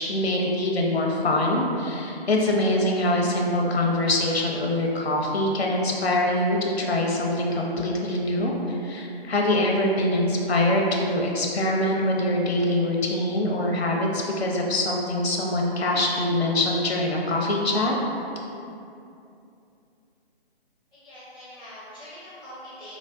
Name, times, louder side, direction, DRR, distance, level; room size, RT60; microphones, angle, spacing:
voice 1, 0.0-17.9, left 1 dB, 90° left, -1 dB, 0.6 m, -24 dB
voice 2, 20.9-23.0, equal, 5° right, -13 dB, 0.5 m, -43 dB
4.5 x 2.0 x 2.4 m, 2.7 s
figure-of-eight pair, 140°, 31 cm